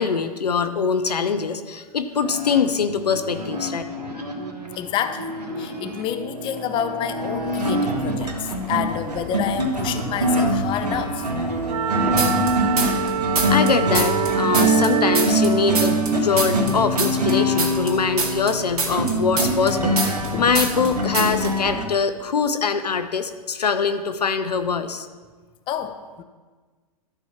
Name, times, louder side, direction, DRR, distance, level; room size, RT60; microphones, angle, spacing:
voice 1, 0.0-3.8 13.5-25.1, left 5 dB, 85° left, 10 dB, 0.7 m, -23 dB
sound 1, 2.2-21.9, right 1 dB, 90° right, 1.4 m, -24 dB
voice 2, 4.8-11.3 13.2-13.3 20.3-20.5 25.7-26.2, left 9 dB, 25° left, 9 dB, 0.6 m, -28 dB
Wind instrument woodwind instrument, 11.7-15.4, right 10 dB, 50° right, 0.5 m, -26 dB
sound 2, 12.2-13.1 13.4-16.1 16.4-20.3 20.5-20.9 21.1-21.5, right 4 dB, 70° right, 2.1 m, -24 dB
12.5 x 4.6 x 5.7 m, 1.4 s
hypercardioid pair, 115°, 20 cm